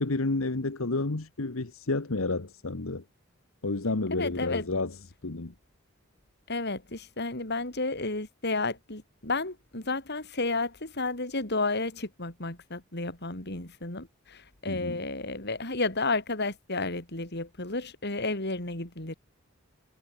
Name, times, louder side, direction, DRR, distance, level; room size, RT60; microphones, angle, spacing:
voice 1, 0.0-3.0 3.6-5.0 5.2-5.5 14.7-15.0, left 3 dB, 80° left, 1.3 m, -30 dB
voice 2, 4.1-4.7 6.5-19.2, left 3 dB, 55° left, 4.5 m, -32 dB
head